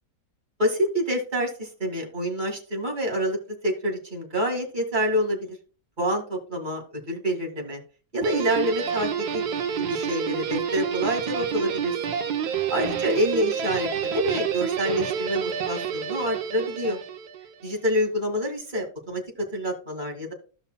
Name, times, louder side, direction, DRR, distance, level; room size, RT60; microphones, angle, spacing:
voice 1, 0.6-3.4 3.6-5.6 6.0-7.8 8.1-9.4 9.9-11.9 12.7-17.0 17.6-20.3, equal, 30° right, 2 dB, 2.0 m, -27 dB
Guitar, 8.2-17.5, right 7 dB, 80° right, 1.3 m, -28 dB
15.5 x 5.5 x 2.2 m, 0.39 s
omnidirectional pair, 1.7 m